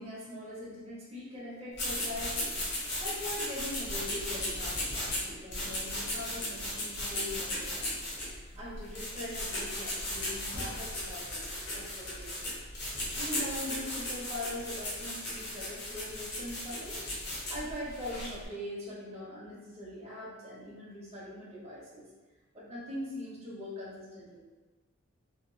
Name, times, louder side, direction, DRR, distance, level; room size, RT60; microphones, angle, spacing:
voice 1, 0.0-2.6 3.0-11.5 11.7-12.3 12.8-17.0 17.5-22.0 22.5-24.5, left 1 dB, 30° right, -8 dB, 0.6 m, -42 dB
sound 1, 1.7-18.4, left 1 dB, 50° left, 0.8 m, -36 dB
2.7 x 2.2 x 2.6 m, 1.2 s
head